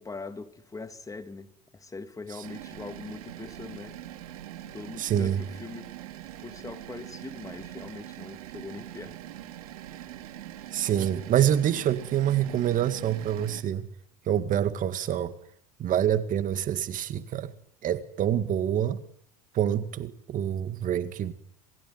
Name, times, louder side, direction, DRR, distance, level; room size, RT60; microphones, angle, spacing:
voice 1, 0.0-4.0 4.7-5.9 6.4-9.2, left 3 dB, 20° left, 2.6 m, -42 dB
sound 1, 2.4-13.6, right 13 dB, 75° right, 3.7 m, -43 dB
voice 2, 5.0-5.4 10.7-13.9 14.3-15.3 15.8-17.5 17.8-19.0 19.5-21.3, right 10 dB, 45° right, 2.0 m, -26 dB
27.0 x 21.0 x 9.5 m
hypercardioid pair, 80°, 19 cm